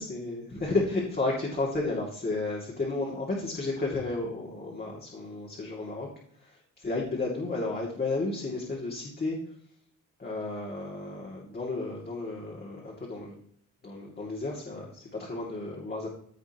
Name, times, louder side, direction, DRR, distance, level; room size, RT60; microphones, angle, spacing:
voice 1, 0.0-6.1 6.4-9.4 10.2-13.4 13.8-16.1, left 2 dB, 30° left, -3 dB, 2.5 m, -32 dB
15.5 x 5.8 x 3.0 m, 0.65 s
cardioid pair, 130°, 32 cm